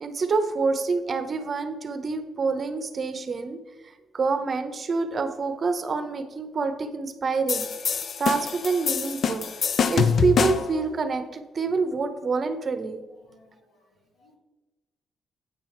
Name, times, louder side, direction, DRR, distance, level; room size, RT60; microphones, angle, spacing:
voice 1, 0.0-3.6 4.1-7.7 8.2-9.5 9.9-13.0, right 4 dB, 40° right, 9 dB, 0.8 m, -27 dB
sound 1, 7.5-10.8, left 6 dB, 55° left, 0.5 m, -25 dB
voice 2, 13.2-13.8 14.2-14.4, left 3 dB, 90° left, -1 dB, 2.4 m, -59 dB
9.0 x 5.5 x 4.5 m, 1.1 s
cardioid pair, 90°, 0 cm